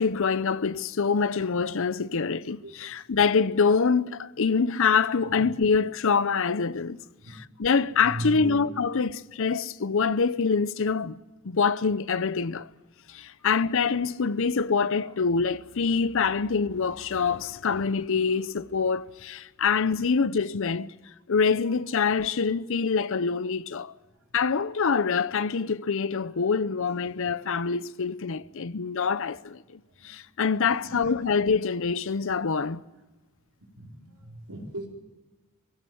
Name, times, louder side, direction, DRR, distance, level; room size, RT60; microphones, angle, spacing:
voice 1, 0.0-7.0 7.6-11.2 11.4-12.7 13.1-20.9 21.3-23.9 24.3-32.8, left 5 dB, 65° left, 0.6 m, -25 dB
voice 2, 8.0-8.6 13.4-13.5 15.0-15.1 30.6-31.3 33.7-34.9, right 1 dB, 80° right, 4.7 m, -38 dB
19.5 x 16.5 x 9.2 m
head